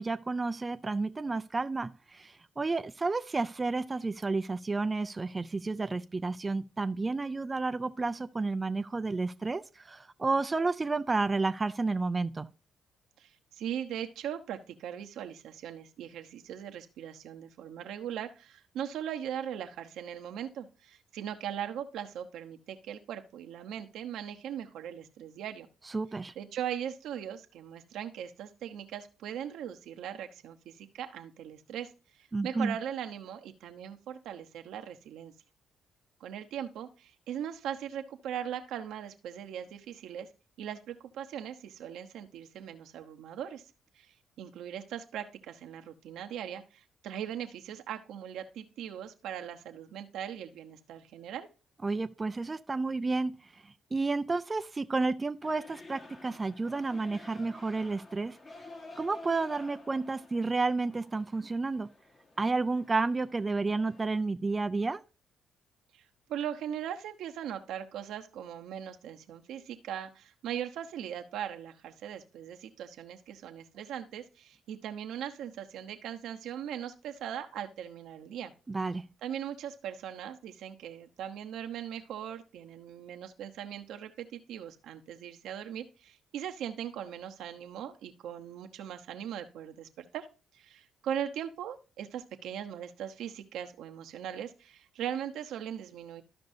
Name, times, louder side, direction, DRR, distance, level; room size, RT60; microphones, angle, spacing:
voice 1, 0.0-12.5 25.9-26.3 32.3-32.8 51.8-58.6 59.0-61.9 62.4-65.0 78.7-79.1, right 3 dB, 25° right, 0.4 m, -31 dB
voice 2, 13.2-25.7 26.4-35.3 36.2-40.3 40.6-43.6 43.9-51.5 65.9-78.5 79.2-90.3 90.5-96.2, right 9 dB, 80° right, 0.9 m, -39 dB
sound 1, 55.4-64.2, left 2 dB, 40° left, 1.4 m, -51 dB
13.5 x 5.3 x 2.7 m
cardioid pair, 90°, 0 cm